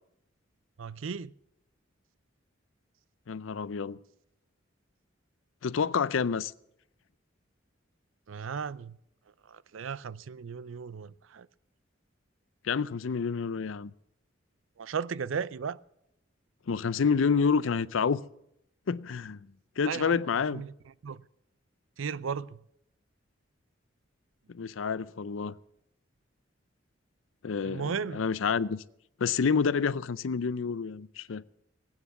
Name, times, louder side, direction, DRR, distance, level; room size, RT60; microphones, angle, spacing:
voice 1, 0.8-1.3 8.3-9.0 9.5-11.5 14.8-15.8 19.9-20.3 20.5-20.7 21.0-21.2 22.0-22.6 27.6-28.3, right 6 dB, 85° right, 0.5 m, -35 dB
voice 2, 3.3-4.0 5.6-6.5 12.6-13.9 16.7-18.2 18.9-19.5 19.8-20.6 24.5-25.5 27.4-28.8 29.2-31.4, left 5 dB, 85° left, 0.5 m, -28 dB
18.5 x 9.0 x 7.1 m
head